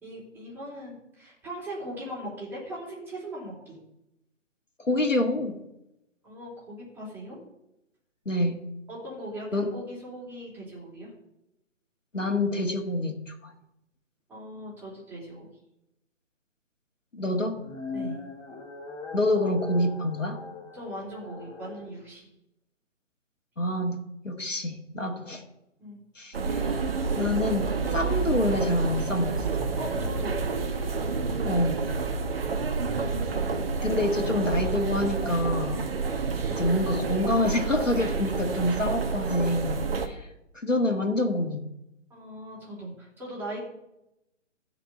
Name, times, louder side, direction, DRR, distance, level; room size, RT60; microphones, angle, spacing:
voice 1, 0.0-3.8 6.2-7.4 8.9-11.1 14.3-15.5 17.9-18.2 20.7-22.3 25.8-26.0 29.8-30.4 33.7-34.3 38.7-39.0 39.8-40.0 42.1-43.6, right 1 dB, 5° right, -7 dB, 3.9 m, -39 dB
voice 2, 4.8-5.6 8.3-8.6 9.5-9.7 12.1-13.5 17.1-17.6 19.1-20.4 23.6-24.0 24.2-25.4 26.2-26.7 27.1-29.4 31.4-31.8 33.8-35.8 36.5-40.3 40.5-41.6, left 1 dB, 85° left, 3 dB, 2.0 m, -27 dB
sound 1, 17.5-21.9, left 4 dB, 10° left, 1.2 m, -40 dB
sound 2, 26.3-40.1, right 4 dB, 50° right, 1.4 m, -29 dB
sound 3, 32.5-33.7, right 5 dB, 25° right, 3.0 m, -43 dB
13.5 x 5.2 x 8.4 m, 0.88 s
figure-of-eight pair, 140°, 37 cm